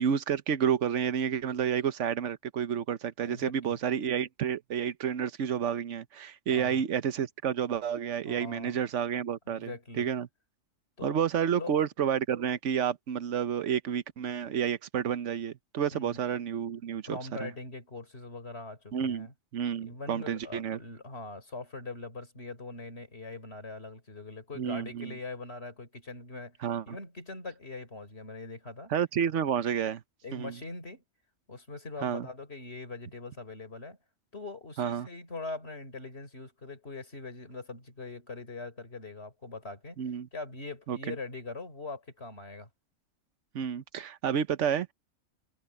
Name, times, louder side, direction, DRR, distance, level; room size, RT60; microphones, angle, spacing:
voice 1, 0.0-10.3 11.0-17.5 18.9-19.3 19.5-20.8 24.6-25.1 26.6-27.0 28.9-30.0 30.3-30.5 32.0-32.3 34.8-35.1 40.0-40.3 40.9-41.2 43.5-44.9, right 8 dB, 65° right, 1.2 m, -30 dB
voice 2, 3.2-3.8 6.5-6.8 8.3-8.8 9.5-10.1 11.0-11.2 11.5-11.8 15.9-16.2 17.1-19.3 19.8-26.6 26.9-28.9 29.3-29.4 30.2-31.0 31.5-34.0 34.3-42.7, left 3 dB, 50° left, 4.1 m, -42 dB
omnidirectional pair, 1.4 m